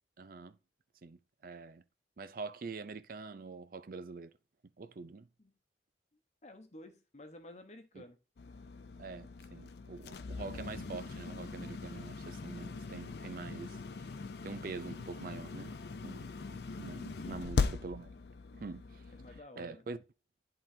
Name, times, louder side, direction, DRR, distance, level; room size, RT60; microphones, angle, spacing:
voice 1, 0.2-0.6 1.0-1.8 2.2-4.3 4.8-5.3 8.0-8.1 9.0-13.8 14.4-15.8 16.0-18.1 18.5-19.0 19.6-20.0, right 4 dB, 50° right, 0.5 m, -45 dB
voice 2, 6.4-8.2 17.2-17.5 19.1-19.9, left 1 dB, 40° left, 1.0 m, -52 dB
sound 1, 8.4-19.4, left 4 dB, 65° left, 0.5 m, -40 dB
11.0 x 3.9 x 2.7 m
head